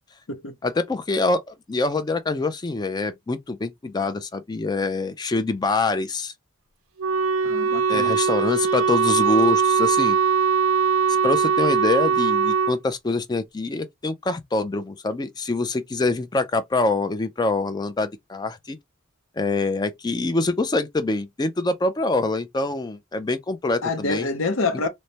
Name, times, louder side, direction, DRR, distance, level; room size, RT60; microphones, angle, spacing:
voice 1, 0.6-6.3 7.9-10.2 11.2-18.8 19.4-24.3, left 3 dB, 20° left, 0.4 m, -25 dB
Wind instrument woodwind instrument, 7.0-12.8, right 6 dB, 75° right, 0.4 m, -21 dB
voice 2, 7.4-8.2 23.8-24.9, left 3 dB, 70° left, 0.7 m, -27 dB
3.2 x 2.1 x 2.7 m
head